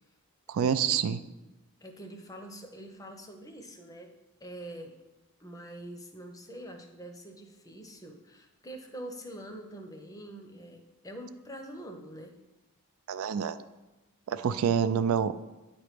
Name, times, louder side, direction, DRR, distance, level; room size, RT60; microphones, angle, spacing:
voice 1, 0.5-1.2 13.1-13.6 14.3-15.3, right 7 dB, 70° right, 12 dB, 0.3 m, -27 dB
voice 2, 1.8-4.1 4.4-4.9 5.4-12.4, right 1 dB, 15° left, 5 dB, 0.6 m, -45 dB
9.4 x 3.1 x 5.0 m, 1.0 s
head